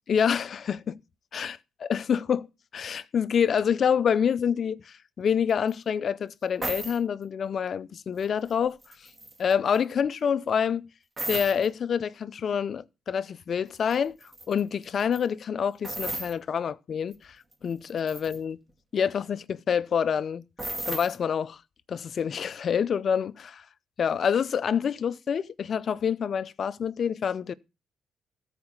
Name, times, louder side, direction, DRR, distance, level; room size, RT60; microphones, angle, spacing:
voice 1, 0.1-1.0 1.3-2.5 2.7-8.8 9.4-10.9 11.3-14.1 14.5-17.4 17.6-18.6 18.9-20.5 20.9-21.6 21.9-23.6 24.0-27.5, left 7 dB, 55° left, 0.6 m, -27 dB
sound 1, 5.7-5.8 6.6-7.0 8.2-8.5 8.8-9.8 11.2-11.7 13.9-14.0 14.2-14.6 15.0-15.2 15.8-16.3 17.1-17.2 17.5-18.4 20.6-21.2, right 2 dB, 25° right, 1.9 m, -34 dB
13.5 x 4.9 x 7.1 m
cardioid pair, 90°, 0 cm